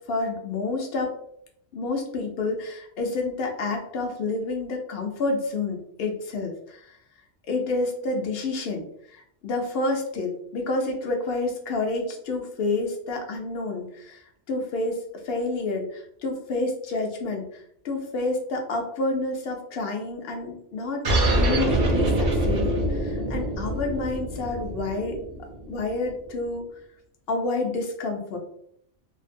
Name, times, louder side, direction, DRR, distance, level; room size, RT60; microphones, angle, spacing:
voice 1, 0.1-1.1 1.7-7.0 7.5-8.9 9.1-21.0 21.3-25.2 25.7-26.6 27.3-28.4, left 3 dB, 60° left, 2 dB, 0.7 m, -29 dB
sound 1, 21.0-26.1, right 1 dB, 55° right, 0.6 m, -25 dB
2.5 x 2.1 x 2.5 m, 0.68 s
omnidirectional pair, 1.3 m